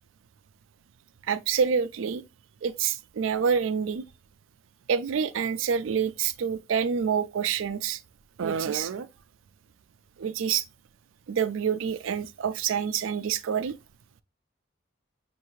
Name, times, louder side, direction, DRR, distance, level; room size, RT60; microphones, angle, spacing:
voice 1, 1.3-2.2 2.6-4.0 4.9-8.0 8.4-9.1 10.2-10.6 11.3-13.7, right 7 dB, 90° right, 0.4 m, -27 dB
5.5 x 2.5 x 3.0 m
head